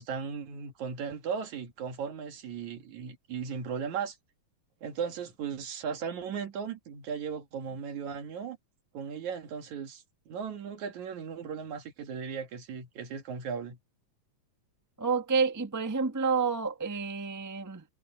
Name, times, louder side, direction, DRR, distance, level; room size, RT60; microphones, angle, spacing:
voice 1, 0.0-4.2 4.8-8.6 8.9-13.8, right 6 dB, 70° right, 3.3 m, -37 dB
voice 2, 15.0-17.8, right 5 dB, 10° right, 0.8 m, -29 dB
omnidirectional pair, 3.5 m